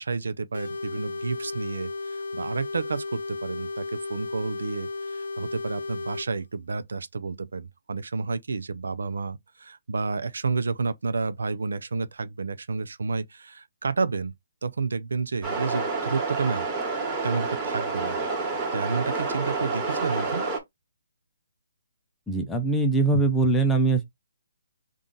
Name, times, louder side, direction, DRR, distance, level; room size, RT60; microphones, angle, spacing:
voice 1, 0.0-14.3 14.6-16.7 17.2-18.2 18.7-20.4, right 4 dB, 80° right, 0.5 m, -30 dB
sound 1, 0.5-6.3, left 3 dB, 75° left, 0.8 m, -34 dB
sound 2, 15.4-20.6, right 3 dB, 15° right, 1.3 m, -29 dB
voice 2, 22.3-24.0, right 3 dB, 5° left, 0.6 m, -22 dB
3.7 x 2.4 x 3.9 m
hypercardioid pair, 155°, 0 cm